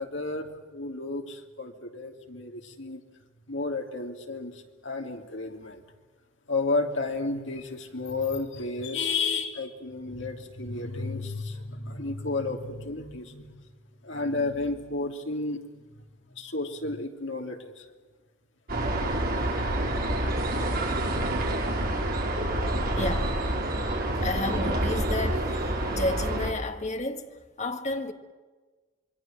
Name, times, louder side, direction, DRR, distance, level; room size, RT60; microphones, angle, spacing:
voice 1, 0.0-3.0 3.5-4.5 4.8-5.8 6.5-13.5 14.0-15.9 16.4-17.6, left 3 dB, 60° left, 3.0 m, -32 dB
sound 1, 18.7-26.5, right 1 dB, 45° right, 4.8 m, -27 dB
voice 2, 23.0-23.4 24.2-28.1, left 2 dB, 35° left, 1.9 m, -32 dB
27.0 x 22.5 x 7.7 m
head